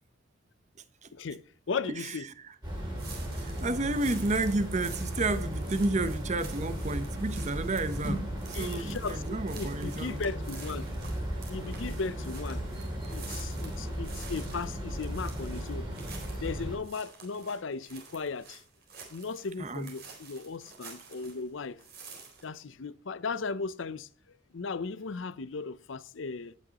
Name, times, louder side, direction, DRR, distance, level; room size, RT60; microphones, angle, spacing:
voice 1, 1.1-2.2 8.5-10.9 11.5-12.6 13.1-15.9 16.4-18.6 19.1-21.8 22.4-24.1 24.5-26.6, left 4 dB, 75° left, 0.6 m, -36 dB
sound 1, 2.6-16.8, equal, 20° right, 6.3 m, -36 dB
sound 2, 3.0-21.5 21.8-22.4, right 5 dB, 55° right, 4.0 m, -49 dB
voice 2, 3.4-10.2 19.6-19.9, right 2 dB, 35° right, 0.9 m, -31 dB
18.5 x 6.3 x 2.9 m
head